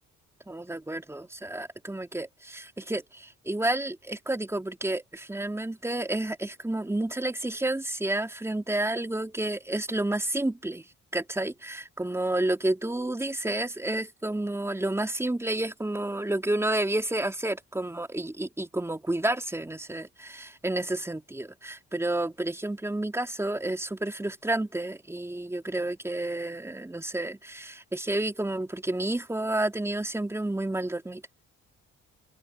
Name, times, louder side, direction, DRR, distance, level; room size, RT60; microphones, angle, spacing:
voice 1, 0.5-10.8 11.1-31.2, right 1 dB, 10° right, 3.7 m, -30 dB
open air
cardioid pair, 115°, 31 cm